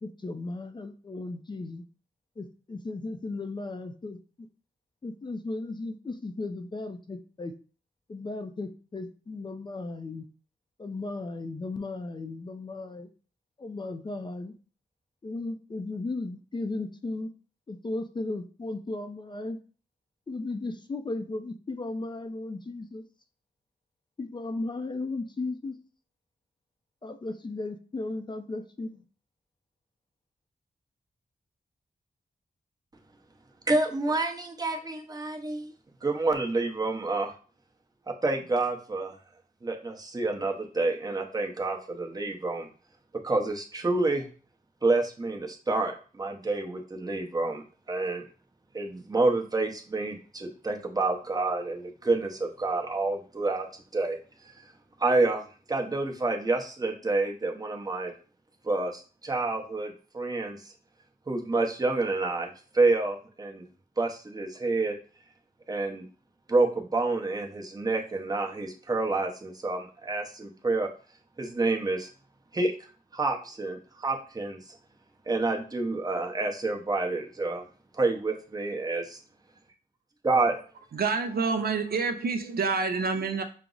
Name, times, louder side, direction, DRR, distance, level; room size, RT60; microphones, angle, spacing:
voice 1, 0.0-1.8 2.4-4.2 5.0-7.5 8.1-10.3 10.8-13.1 13.6-14.6 15.2-17.3 17.7-19.6 20.3-23.0 24.2-25.8 27.0-29.0, left 2 dB, 30° left, 0.4 m, -35 dB
voice 2, 33.7-35.7 36.0-37.3 38.2-39.2 39.6-42.7 43.2-44.3 44.8-48.2 48.7-54.2 55.0-58.1 58.6-60.7 61.3-63.7 64.0-65.0 65.7-66.0 66.5-70.9 71.4-72.1 72.5-72.7 73.1-74.8 75.3-77.7 78.0-79.2 80.2-80.7, right 3 dB, 25° right, 0.7 m, -28 dB
voice 3, 80.9-83.4, right 4 dB, 70° right, 0.6 m, -27 dB
5.7 x 2.0 x 3.8 m
wide cardioid pair, 120°, 16 cm